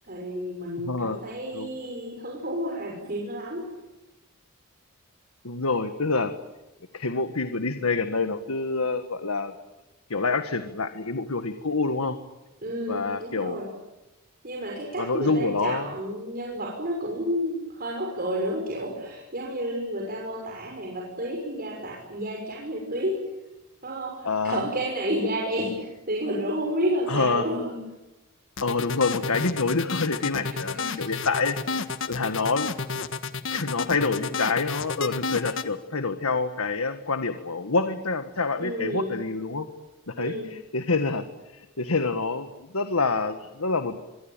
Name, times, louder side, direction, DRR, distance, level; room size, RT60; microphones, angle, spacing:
voice 1, 0.0-3.7 12.6-13.7 14.4-23.2 23.8-27.8 30.5-31.1 38.6-39.2 40.2-40.5, equal, 45° right, -1 dB, 6.2 m, -31 dB
voice 2, 0.8-1.2 1.5-1.7 5.4-6.3 6.9-9.5 10.1-12.2 12.9-13.6 15.0-15.9 24.2-24.6 27.1-27.4 28.6-31.8 32.1-32.7 33.5-39.7 40.1-41.2 41.5-44.0, left 3 dB, 85° left, 8 dB, 1.6 m, -27 dB
sound 1, 28.6-35.7, left 4 dB, 60° left, 1.5 m, -31 dB
25.5 x 23.5 x 9.1 m, 1.0 s
head